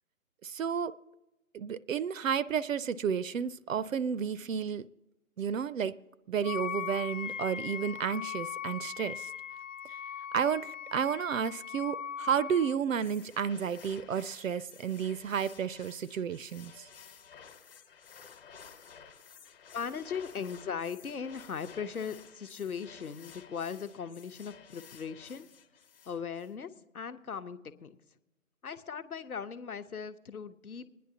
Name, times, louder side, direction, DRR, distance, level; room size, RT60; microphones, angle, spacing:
voice 1, 0.4-0.9 1.5-4.9 5.4-5.9 6.3-9.3 9.9-10.0 10.3-16.9, right 7 dB, 65° right, 17 dB, 0.5 m, -32 dB
Wind instrument woodwind instrument, 6.4-12.8, left 9 dB, 60° left, 0.5 m, -39 dB
sound 1, 12.9-26.5, left 6 dB, 40° left, 1.1 m, -53 dB
voice 2, 19.7-25.5 26.1-28.0 28.6-30.9, left 6 dB, 85° left, 11 dB, 1.0 m, -39 dB
26.5 x 10.0 x 2.8 m, 1.0 s
figure-of-eight pair, 155°, 43 cm